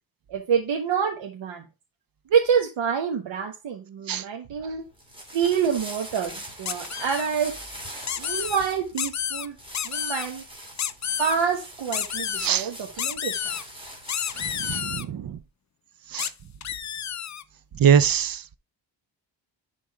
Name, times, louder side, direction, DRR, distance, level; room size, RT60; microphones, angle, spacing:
voice 1, 0.3-1.6 2.3-4.9 5.3-7.7 8.2-9.6 9.8-10.4 11.2-13.4, right 7 dB, 80° right, 1.3 m, -27 dB
sound 1, 4.8-15.0, right 1 dB, 10° right, 2.5 m, -42 dB
sound 2, 6.6-7.3 8.0-8.6 9.0-9.5 9.7-10.3 10.8-11.3 11.9-12.5 13.0-13.6 14.1-15.0 16.2-16.3 16.6-17.4, left 9 dB, 40° left, 0.5 m, -30 dB
voice 2, 14.7-15.2 16.1-16.3 17.8-18.4, right 8 dB, 50° right, 0.7 m, -21 dB
10.5 x 3.8 x 4.8 m
wide cardioid pair, 125°, 45 cm